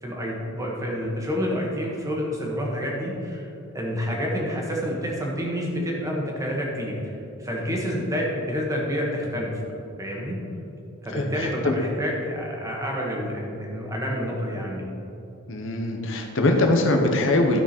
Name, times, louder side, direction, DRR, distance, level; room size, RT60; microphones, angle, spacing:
voice 1, 0.0-3.5 3.7-6.9 7.4-9.5 10.0-10.4 11.0-14.8, equal, 15° right, -2 dB, 1.4 m, -28 dB
voice 2, 7.7-8.0 11.1-11.8 15.5-17.6, left 2 dB, 60° left, 2 dB, 0.9 m, -23 dB
12.5 x 6.1 x 4.4 m, 2.9 s
head